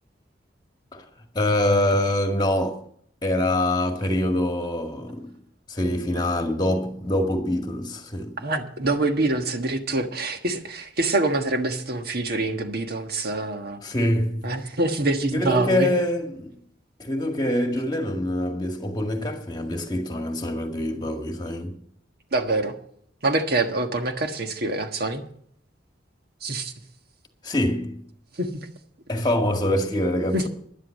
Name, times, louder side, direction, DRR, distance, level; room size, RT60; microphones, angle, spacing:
voice 1, 1.3-2.8 3.2-5.3 5.7-8.4 13.8-14.5 15.3-16.6 17.0-21.8 27.4-28.0 29.1-30.5, left 1 dB, 25° left, 1.9 m, -25 dB
voice 2, 8.4-13.8 14.4-15.9 22.3-22.7 23.2-25.2 26.4-26.7 28.4-28.7 30.3-30.4, right 2 dB, 55° right, 1.5 m, -25 dB
11.5 x 11.0 x 6.5 m
head